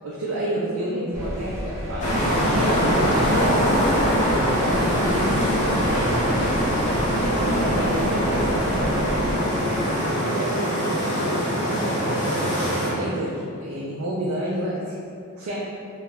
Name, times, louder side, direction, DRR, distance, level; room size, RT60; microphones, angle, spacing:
voice 1, 0.0-6.7 7.2-9.3 10.3-15.0 15.4-15.6, right 1 dB, 75° right, -6 dB, 0.4 m, -30 dB
sound 1, 1.1-9.4, equal, 15° right, 0.4 m, -32 dB
sound 2, 2.0-12.9, equal, 35° left, 0.6 m, -22 dB
2.2 x 2.0 x 3.7 m, 2.4 s
head